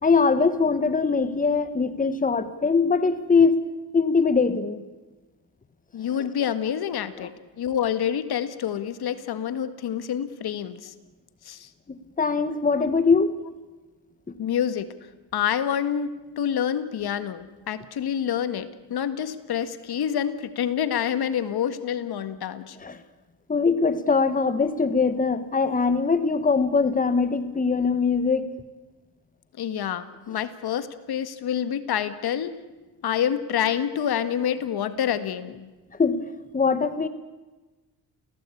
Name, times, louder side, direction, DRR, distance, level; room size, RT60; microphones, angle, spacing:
voice 1, 0.0-3.7 3.9-4.8 11.9-13.3 22.8-23.0 23.5-28.5 36.0-37.1, left 4 dB, 20° left, 11 dB, 1.4 m, -22 dB
voice 2, 5.9-10.9 11.5-11.7 12.8-12.9 14.4-14.9 15.3-22.8 29.6-32.6 33.0-35.7, left 9 dB, 65° left, 12 dB, 1.8 m, -27 dB
29.5 x 17.0 x 8.6 m, 1.2 s
cardioid pair, 110°, 41 cm